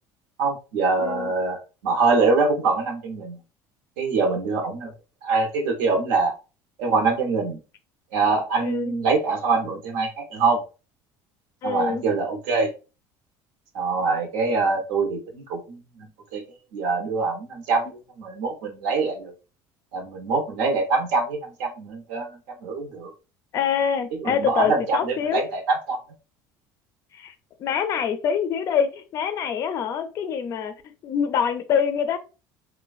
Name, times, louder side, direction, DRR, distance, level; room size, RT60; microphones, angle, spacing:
voice 1, 0.4-1.6 1.8-3.4 4.0-4.9 5.2-6.3 6.8-7.6 8.1-10.6 11.6-12.7 13.7-16.4 16.7-17.9 18.2-19.3 19.9-22.3 22.6-23.1 24.2-26.0, right 4 dB, 85° right, 0.7 m, -24 dB
voice 2, 1.0-1.3 8.6-9.0 11.6-12.0 23.5-25.4 27.1-27.3 27.6-30.7 31.0-32.2, left 7 dB, 35° left, 0.4 m, -25 dB
3.0 x 2.1 x 2.3 m
cardioid pair, 160°, 9 cm